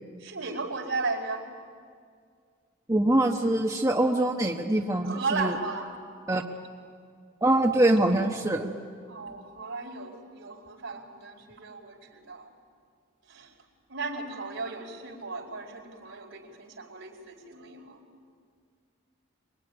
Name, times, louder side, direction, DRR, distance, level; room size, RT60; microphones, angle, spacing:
voice 1, 0.2-1.5 5.0-5.9 9.1-12.5 13.3-13.5 13.9-18.0, right 3 dB, 70° right, -2 dB, 4.8 m, -35 dB
voice 2, 2.9-5.5 6.3-6.4 7.4-8.7, right 1 dB, 15° right, 1 dB, 1.1 m, -24 dB
25.0 x 22.5 x 10.0 m, 2.1 s
head